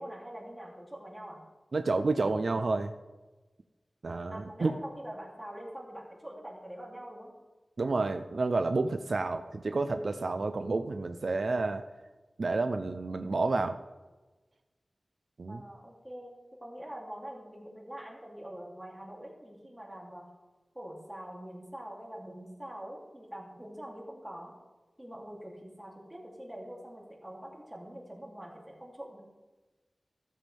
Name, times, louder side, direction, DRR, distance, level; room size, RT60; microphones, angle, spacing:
voice 1, 0.0-1.4 4.3-7.3 15.5-20.3 20.7-24.6 25.0-29.2, right 1 dB, 10° right, -2 dB, 2.8 m, -44 dB
voice 2, 1.7-2.9 4.0-4.8 7.8-11.8 12.4-13.8 15.4-15.6, right 3 dB, 75° right, 8 dB, 0.5 m, -30 dB
14.0 x 7.6 x 3.4 m, 1.2 s
wide cardioid pair, 50°, 0 cm